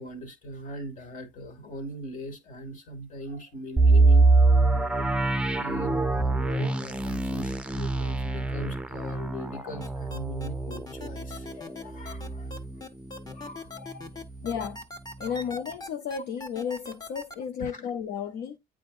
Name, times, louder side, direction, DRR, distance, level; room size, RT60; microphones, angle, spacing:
voice 1, 0.0-4.5 4.7-5.1 5.6-12.5 13.2-14.2 15.3-15.5 17.6-17.8, equal, 50° left, 2.2 m, -40 dB
sound 1, 3.8-13.5 13.8-13.9 14.4-14.7, right 3 dB, 5° right, 0.6 m, -24 dB
sound 2, 9.8-17.3, left 3 dB, 20° left, 1.4 m, -40 dB
voice 2, 14.4-14.9 15.2-18.6, left 7 dB, 80° left, 0.8 m, -33 dB
8.8 x 4.9 x 2.5 m
cardioid pair, 110°, 17 cm